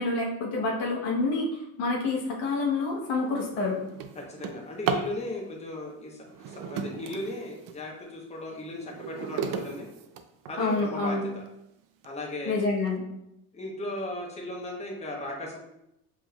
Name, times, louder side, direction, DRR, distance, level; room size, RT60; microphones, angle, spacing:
voice 1, 0.0-3.8 10.6-11.2 12.5-13.0, left 3 dB, 65° left, -1 dB, 1.2 m, -28 dB
Drawer open or close, 2.5-2.7 3.2-5.2 6.2-7.8 8.4-10.8 11.5-11.6 12.0-12.1 12.5-12.9, right 6 dB, 50° right, 0.5 m, -35 dB
voice 2, 4.1-9.9 10.5-11.4 12.0-12.7 13.5-15.6, left 1 dB, 15° left, -2 dB, 1.0 m, -37 dB
5.0 x 3.5 x 2.3 m, 0.85 s
supercardioid pair, 95°, 44 cm